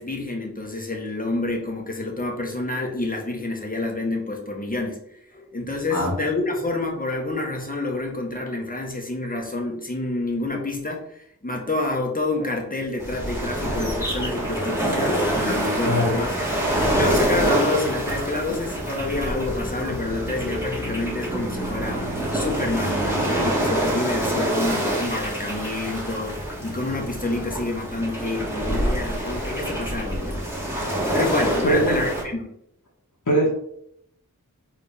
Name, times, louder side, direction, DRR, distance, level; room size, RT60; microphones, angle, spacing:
voice 1, 0.0-5.0 5.3-16.6 16.9-30.5 31.1-32.5, left 2 dB, 25° left, 0 dB, 1.6 m, -28 dB
sound 1, 13.0-32.2, right 1 dB, 5° right, 2.4 m, -26 dB
voice 2, 31.6-32.0 33.3-33.5, right 1 dB, 65° left, -3 dB, 1.8 m, -21 dB
4.8 x 4.0 x 5.1 m, 0.73 s
wide cardioid pair, 60°, 33 cm